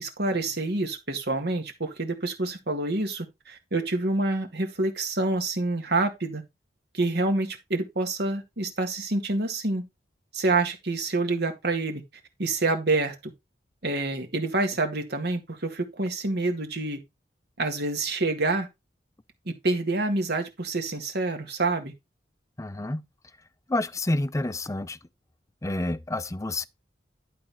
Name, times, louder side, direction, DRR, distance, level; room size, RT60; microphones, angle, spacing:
voice 1, 0.0-6.4 6.9-9.9 10.3-12.0 12.4-13.3 13.8-17.0 17.6-18.7 19.5-21.9, right 2 dB, 60° right, 2.0 m, -27 dB
voice 2, 22.6-23.0 23.7-25.0 25.6-26.7, left 2 dB, 20° left, 0.5 m, -28 dB
11.5 x 4.1 x 5.6 m
head